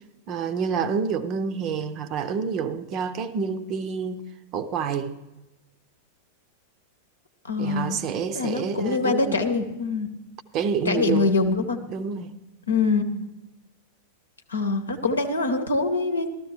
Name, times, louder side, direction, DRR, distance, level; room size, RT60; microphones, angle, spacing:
voice 1, 0.3-4.2 4.5-5.2 7.6-9.4 10.5-11.3 11.9-12.3, right 6 dB, 35° right, 0.6 m, -28 dB
voice 2, 7.5-8.0 8.3-10.1 10.9-11.8 12.7-13.3 14.5-16.3, left 3 dB, 75° left, 0.9 m, -24 dB
13.5 x 13.0 x 3.2 m
figure-of-eight pair, 90°, 0 cm